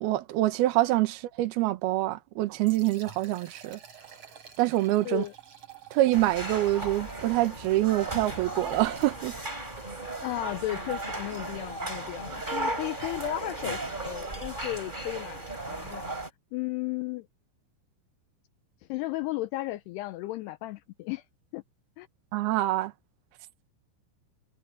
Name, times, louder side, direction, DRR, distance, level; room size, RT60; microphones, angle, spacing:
voice 1, 0.0-3.8 4.6-5.2 5.9-9.3 22.3-22.9, right 16 dB, 70° right, 2.6 m, -26 dB
Liquid, 2.5-9.4, right 7 dB, 35° right, 4.3 m, -51 dB
sound 1, 6.1-16.3, right 2 dB, 10° right, 3.5 m, -36 dB
voice 2, 10.2-16.0 16.5-17.3 18.9-21.2 21.5-21.6 22.0-22.1, left 17 dB, 85° left, 2.3 m, -34 dB
omnidirectional pair, 5.6 m